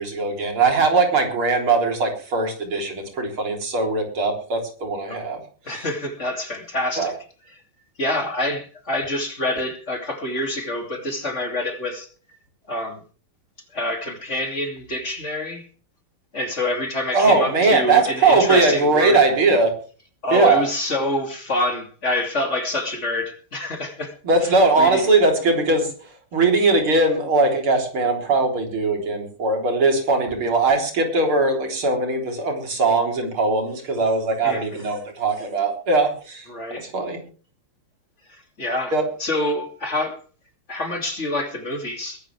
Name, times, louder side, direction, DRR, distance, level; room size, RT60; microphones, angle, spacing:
voice 1, 0.0-5.4 7.0-7.1 17.1-19.7 20.3-20.6 24.2-25.9 26.3-36.5 36.8-37.2 38.9-39.0, right 3 dB, 85° right, 4 dB, 4.6 m, -20 dB
voice 2, 5.6-7.1 8.0-12.1 12.7-13.0 13.7-15.7 16.3-19.2 20.2-24.2 24.4-25.1 34.4-34.8 36.5-36.9 38.3-38.9 39.2-40.2 40.7-42.2, left 1 dB, 35° left, 5 dB, 3.0 m, -26 dB
21.5 x 12.0 x 3.4 m, 0.39 s
omnidirectional pair, 2.3 m